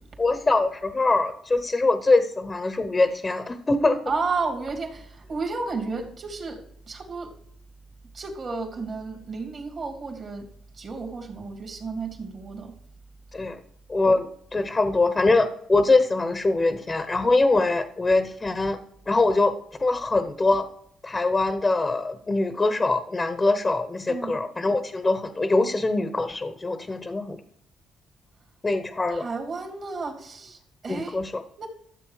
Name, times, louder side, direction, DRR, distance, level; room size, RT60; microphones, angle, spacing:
voice 1, 0.2-4.0 13.3-13.6 13.9-18.8 19.1-19.5 19.8-20.7 21.0-27.4 28.6-29.3 30.9-31.4, left 3 dB, 25° left, 9 dB, 1.0 m, -23 dB
voice 2, 4.1-6.6 6.9-7.3 8.1-10.5 10.8-12.8 24.1-24.4 29.2-31.2 31.6-31.7, right 4 dB, 45° right, 2 dB, 2.8 m, -32 dB
13.0 x 7.5 x 4.9 m, 0.68 s
cardioid pair, 90°, 0 cm